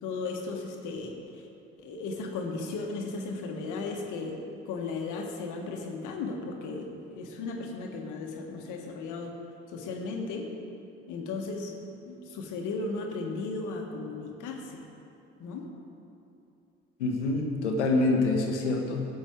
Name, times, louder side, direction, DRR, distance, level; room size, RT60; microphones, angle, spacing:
voice 1, 0.0-1.5 1.8-4.4 4.6-9.4 9.7-10.5 11.1-11.7 12.0-14.8 15.4-15.7, left 3 dB, 60° left, 2 dB, 1.5 m, -35 dB
voice 2, 17.0-19.1, left 2 dB, 85° left, 2 dB, 1.3 m, -26 dB
12.5 x 8.0 x 4.6 m, 2.8 s
hypercardioid pair, 60°, 34 cm